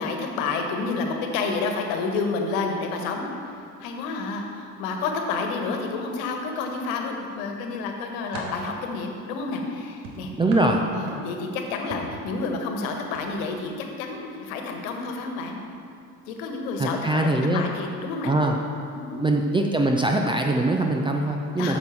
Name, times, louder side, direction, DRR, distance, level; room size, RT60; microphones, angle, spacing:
voice 1, 0.0-3.2 3.8-10.3 10.9-13.7 14.0-15.6 16.3-18.3 18.9-19.2 21.6-21.8, left 4 dB, 55° left, 3 dB, 1.5 m, -29 dB
sound 1, 6.5-7.3 7.8-8.7 10.0-11.5 11.9-12.2 13.0-13.2 13.6-13.8, right 2 dB, 60° right, 1.9 m, -40 dB
voice 2, 10.4-10.8 16.8-17.6 18.3-18.6 19.2-21.8, right 2 dB, 10° right, 2 dB, 0.5 m, -22 dB
13.0 x 6.5 x 4.5 m, 2.5 s
figure-of-eight pair, 65°, 49 cm